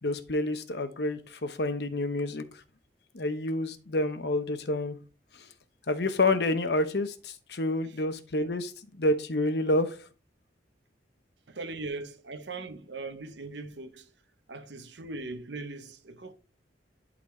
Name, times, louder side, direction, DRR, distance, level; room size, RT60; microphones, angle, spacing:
voice 1, 0.0-2.4 3.1-5.0 5.9-10.0, left 2 dB, 65° left, 0.9 m, -28 dB
voice 2, 11.5-14.1 14.5-16.3, right 3 dB, 75° right, 0.9 m, -40 dB
11.5 x 4.1 x 3.2 m
head